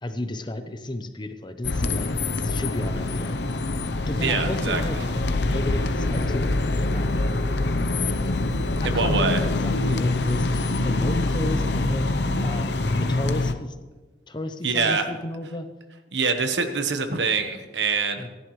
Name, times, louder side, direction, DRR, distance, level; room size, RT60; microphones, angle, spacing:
voice 1, 0.0-3.7 4.1-5.0 5.4-6.5 6.9-7.6 8.8-12.1 12.4-13.8 14.3-15.7 18.2-18.3, left 1 dB, 25° left, 8 dB, 0.8 m, -33 dB
sound 1, 1.6-13.5, left 2 dB, 65° left, 0.7 m, -25 dB
voice 2, 4.2-4.8 8.8-9.4 14.6-15.1 16.1-18.3, right 4 dB, 80° right, 7 dB, 1.2 m, -24 dB
27.0 x 11.0 x 3.2 m, 1.3 s
head